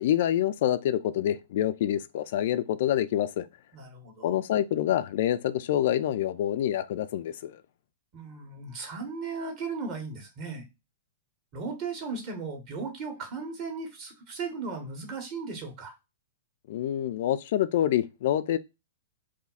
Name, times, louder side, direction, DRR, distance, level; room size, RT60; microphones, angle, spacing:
voice 1, 0.0-3.5 4.2-7.6 16.7-18.6, left 11 dB, 50° left, 0.3 m, -26 dB
voice 2, 3.7-4.3 8.1-10.6 11.5-15.9, right 4 dB, 35° right, 1.7 m, -36 dB
4.9 x 2.3 x 4.0 m
figure-of-eight pair, 105°, 0 cm